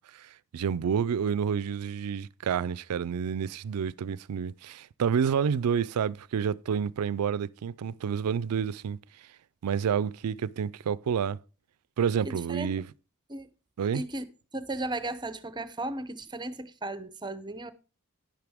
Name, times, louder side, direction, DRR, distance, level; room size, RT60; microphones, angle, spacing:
voice 1, 0.1-9.0 9.6-11.4 12.0-12.9 13.8-14.0, right 7 dB, 90° right, 0.4 m, -29 dB
voice 2, 12.2-12.8 13.3-13.5 13.9-14.3 14.5-17.7, right 2 dB, 20° right, 0.7 m, -35 dB
11.0 x 10.5 x 3.5 m
head